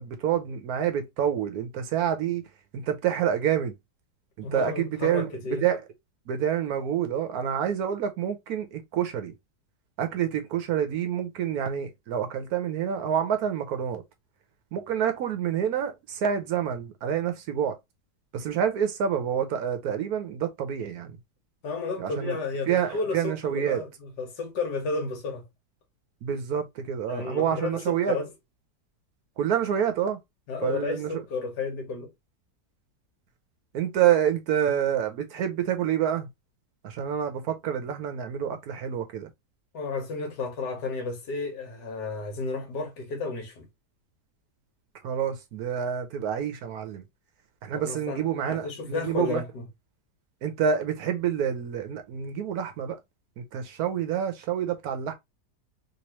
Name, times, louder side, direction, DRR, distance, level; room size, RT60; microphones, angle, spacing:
voice 1, 0.0-2.5 2.7-3.7 4.4-5.8 6.3-9.3 10.0-14.0 14.7-17.8 18.3-21.2 22.0-22.4 22.7-23.8 26.2-28.2 29.4-30.2 30.6-31.1 33.7-36.3 36.8-39.3 45.0-47.0 47.6-49.4 50.4-53.0 53.4-55.1, right 9 dB, 70° right, 1.0 m, -27 dB
voice 2, 4.4-5.6 21.6-25.5 27.1-28.3 30.5-32.1 39.7-43.7 47.7-49.6, left 4 dB, 75° left, 1.6 m, -32 dB
3.2 x 3.0 x 2.9 m
omnidirectional pair, 1.8 m